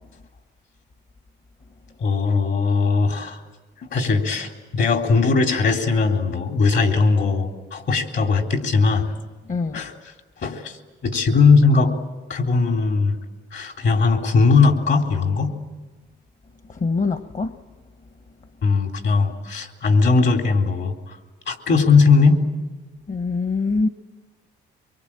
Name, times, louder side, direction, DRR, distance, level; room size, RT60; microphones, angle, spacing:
voice 1, 2.0-3.4 3.8-9.1 9.7-9.9 10.4-11.9 12.3-13.2 13.5-15.6 18.6-21.2 21.5-22.4, left 4 dB, 65° left, 4 dB, 3.6 m, -19 dB
voice 2, 9.5-9.8 16.7-17.5 23.1-23.9, left 4 dB, 40° left, 9 dB, 1.1 m, -23 dB
24.5 x 23.5 x 8.9 m, 1.3 s
cardioid pair, 90°, 20 cm